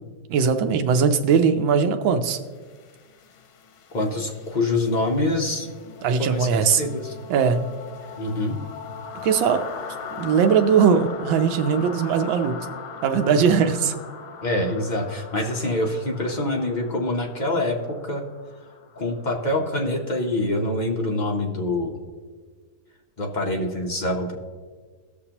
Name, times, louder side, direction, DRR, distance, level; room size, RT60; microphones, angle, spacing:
voice 1, 0.3-2.4 6.0-6.8 7.3-7.6 9.2-9.6 10.1-12.6 13.0-13.9, right 6 dB, 75° right, 7 dB, 1.4 m, -20 dB
sound 1, 2.5-20.3, left 5 dB, 90° left, 1.6 m, -40 dB
voice 2, 3.9-5.7 6.2-6.5 6.8-7.1 8.2-8.6 14.4-18.2 19.0-21.9 23.2-24.3, left 1 dB, 50° left, 0 dB, 0.5 m, -25 dB
17.0 x 6.5 x 2.9 m, 1.5 s
omnidirectional pair, 2.2 m